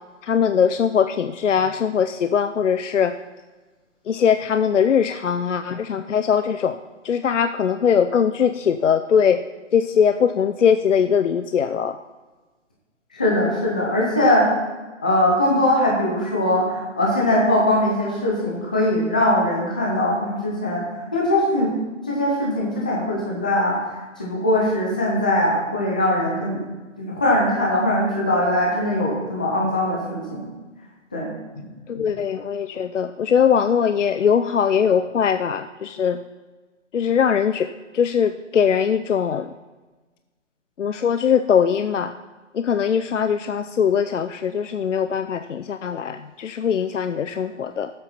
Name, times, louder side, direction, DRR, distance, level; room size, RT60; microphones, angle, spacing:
voice 1, 0.2-3.1 4.1-6.8 7.0-9.4 9.7-12.0 31.9-36.2 36.9-37.7 37.9-39.5 40.8-42.1 42.5-47.9, left 7 dB, 65° left, 10 dB, 0.6 m, -21 dB
voice 2, 13.1-14.5 15.0-20.8 21.1-21.7 22.1-23.7 24.2-26.6 27.0-30.4 31.1-31.3 31.5-31.6 32.0-32.1, left 1 dB, 5° left, -4 dB, 0.5 m, -21 dB
17.5 x 7.8 x 4.3 m, 1.3 s
figure-of-eight pair, 150°, 39 cm